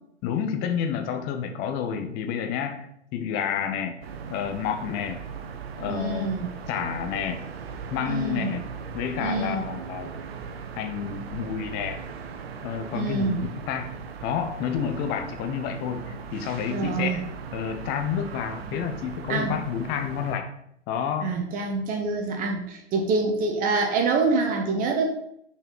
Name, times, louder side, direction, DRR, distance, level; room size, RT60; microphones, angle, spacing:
voice 1, 0.2-4.0 4.3-5.2 5.8-6.3 6.7-7.4 7.9-8.6 8.9-10.2 10.8-12.0 12.6-13.9 14.2-17.2 17.5-20.5 20.9-21.3, left 8 dB, 25° left, 7 dB, 0.9 m, -29 dB
sound 1, 4.0-20.4, right 6 dB, 55° right, 0.9 m, -38 dB
voice 2, 5.9-6.5 8.0-8.6 9.2-9.7 12.9-13.4 16.7-17.2 19.3-19.5 21.2-25.1, right 4 dB, 25° right, 2 dB, 1.0 m, -26 dB
6.1 x 4.3 x 5.5 m, 0.75 s
hypercardioid pair, 125°, 35 cm